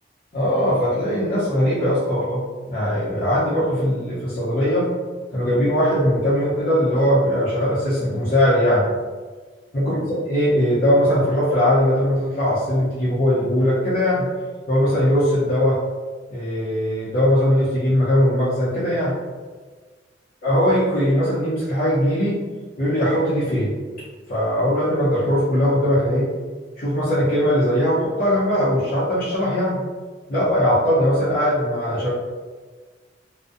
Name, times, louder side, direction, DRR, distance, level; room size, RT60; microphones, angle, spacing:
voice 1, 0.3-4.9 5.3-8.9 9.7-14.3 14.7-15.8 16.3-19.1 20.4-22.4 22.8-23.7 24.3-26.3 26.8-29.8 30.3-32.1, equal, 50° left, -10 dB, 0.6 m, -20 dB
2.4 x 2.1 x 2.5 m, 1.4 s
head